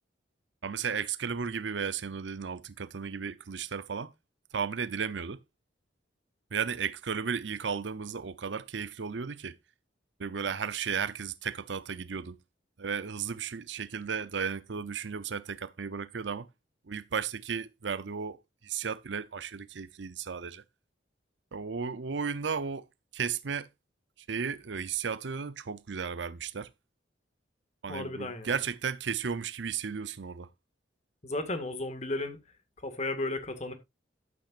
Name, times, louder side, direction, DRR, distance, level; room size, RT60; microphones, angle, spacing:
voice 1, 0.6-4.1 4.5-5.4 6.5-9.6 10.2-12.4 12.8-16.5 16.9-20.6 21.5-22.8 23.1-23.7 24.3-26.7 27.8-30.5, right 6 dB, 70° right, 0.7 m, -34 dB
voice 2, 27.9-28.5 31.2-32.4 32.8-33.7, left 2 dB, 40° left, 1.8 m, -34 dB
12.0 x 8.7 x 2.5 m
head